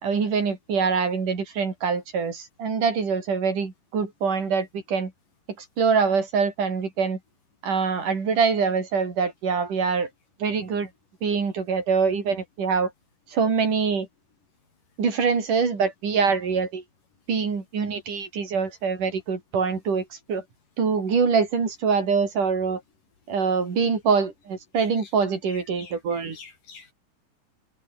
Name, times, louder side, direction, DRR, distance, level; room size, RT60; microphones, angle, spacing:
voice 1, 0.0-5.1 5.8-7.2 7.6-10.1 10.4-10.9 11.2-12.9 13.3-14.1 15.0-16.8 17.3-20.4 20.8-22.8 23.3-26.4, right 5 dB, 75° right, 5.9 m, -24 dB
voice 2, 24.8-25.1 25.5-26.9, left 5 dB, 80° left, 6.4 m, -47 dB
omnidirectional pair, 3.7 m